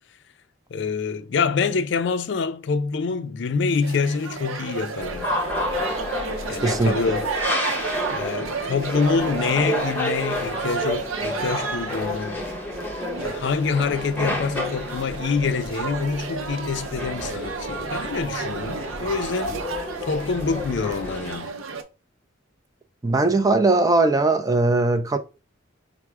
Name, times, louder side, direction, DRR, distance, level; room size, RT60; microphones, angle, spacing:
voice 1, 0.7-5.4 6.5-7.3 8.1-12.4 13.2-21.5, left 5 dB, 60° left, 0.4 m, -26 dB
sound 1, 3.8-21.8, right 5 dB, 90° right, 0.6 m, -33 dB
sound 2, 5.0-21.4, left 1 dB, 10° left, 0.8 m, -30 dB
voice 2, 6.6-7.0 23.0-25.2, right 2 dB, 15° right, 0.3 m, -19 dB
4.4 x 2.0 x 4.6 m
head